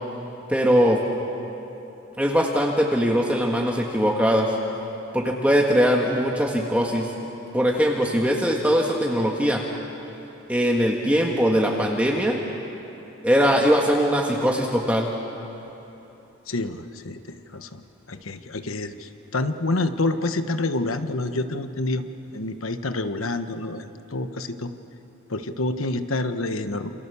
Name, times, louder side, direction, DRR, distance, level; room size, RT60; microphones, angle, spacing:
voice 1, 0.5-1.0 2.2-4.6 5.1-7.1 7.5-9.6 10.5-12.4 13.2-15.1, equal, 5° right, -1 dB, 1.7 m, -21 dB
voice 2, 16.5-17.8 18.1-22.0 22.3-24.7 25.3-26.9, left 2 dB, 90° left, 9 dB, 1.3 m, -28 dB
28.5 x 28.0 x 7.1 m, 3.0 s
head